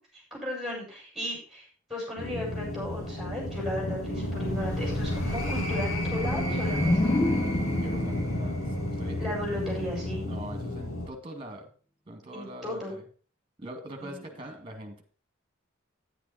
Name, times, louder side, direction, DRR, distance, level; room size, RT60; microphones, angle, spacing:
voice 1, 0.1-7.2 9.2-10.3 12.3-12.9 14.0-14.2, left 1 dB, ahead, -3 dB, 7.2 m, -35 dB
sound 1, 2.2-11.1, left 1 dB, 75° left, 2.5 m, -31 dB
sound 2, 6.2-9.9, left 1 dB, 15° left, 0.4 m, -30 dB
voice 2, 7.8-9.2 10.2-11.7 12.1-13.1 13.6-15.0, right 1 dB, 25° right, 5 dB, 2.4 m, -42 dB
10.5 x 10.0 x 4.4 m, 0.40 s
head